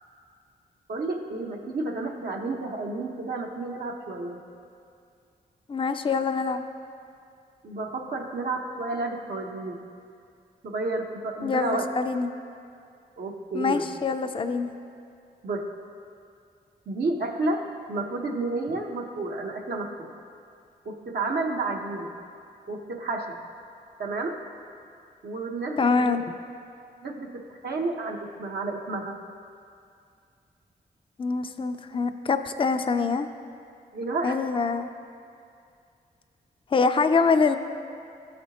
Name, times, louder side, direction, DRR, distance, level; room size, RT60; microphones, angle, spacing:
voice 1, 0.9-4.4 7.6-9.8 10.6-11.9 13.2-13.9 15.4-15.7 16.9-19.9 20.8-22.1 22.7-23.4 24.0-24.4 25.2-26.2 27.0-29.2 33.9-34.4, right 2 dB, 70° right, 1 dB, 0.8 m, -31 dB
voice 2, 5.7-6.6 11.4-12.3 13.5-14.7 25.8-26.2 31.2-33.3 34.2-34.9 36.7-37.6, left 4 dB, 30° left, 8 dB, 0.4 m, -24 dB
12.5 x 4.3 x 2.9 m, 2.4 s
cardioid pair, 45°, 17 cm